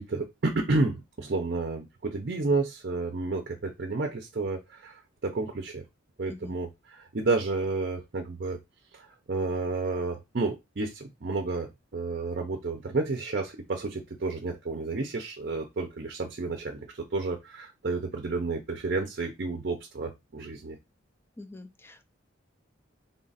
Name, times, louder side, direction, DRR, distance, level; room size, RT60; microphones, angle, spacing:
voice 1, 0.0-5.8 6.2-8.6 8.9-20.8, right 3 dB, 50° right, 0.6 m, -31 dB
voice 2, 21.4-22.1, left 2 dB, 10° left, 0.4 m, -45 dB
3.8 x 2.5 x 4.0 m
head